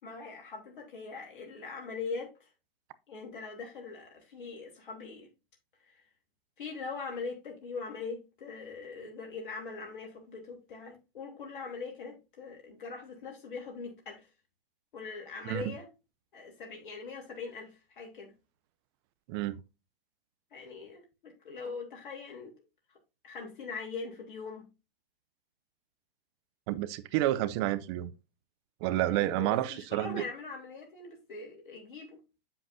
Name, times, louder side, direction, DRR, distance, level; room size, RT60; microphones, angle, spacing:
voice 1, 0.0-2.3 3.1-5.3 5.8-6.0 6.6-14.3 14.9-15.9 16.3-18.3 20.5-22.5 23.2-24.7 29.0-32.2, left 4 dB, 60° left, 3.3 m, -42 dB
voice 2, 26.7-28.1 28.8-30.2, right 14 dB, 25° right, 0.5 m, -30 dB
7.8 x 7.7 x 2.7 m
hypercardioid pair, 125°, 29 cm